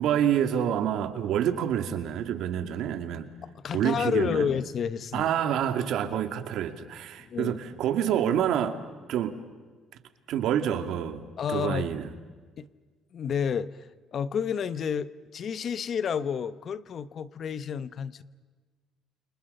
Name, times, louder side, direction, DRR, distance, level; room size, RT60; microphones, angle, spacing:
voice 1, 0.0-3.3 3.7-4.5 5.1-8.8 9.1-9.4 10.3-12.1, right 10 dB, 70° right, 8 dB, 2.4 m, -27 dB
voice 2, 3.4-5.3 7.2-7.6 11.4-11.9 12.6-12.7 13.1-18.2, left 7 dB, 50° left, 15 dB, 1.1 m, -30 dB
29.5 x 28.0 x 5.6 m, 1.4 s
cardioid pair, 110°, 0 cm